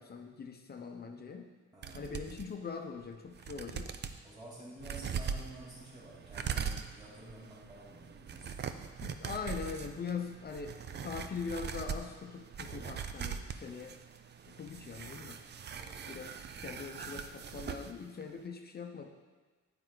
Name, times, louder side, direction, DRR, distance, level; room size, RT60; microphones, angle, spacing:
voice 1, 0.0-1.5 1.9-3.9 9.0-10.7 11.0-14.0 14.5-15.4 16.1-16.3 16.6-19.1, left 5 dB, 35° left, 4 dB, 0.8 m, -42 dB
voice 2, 1.7-2.4 4.2-8.9 15.7-16.2, right 1 dB, 20° right, -10 dB, 3.3 m, -51 dB
sound 1, 1.8-2.5 3.0-3.1 3.3-4.2 4.8-17.9 18.2-18.3, right 7 dB, 35° right, 0.5 m, -41 dB
9.3 x 8.9 x 3.9 m, 1.3 s
cardioid pair, 125°, 29 cm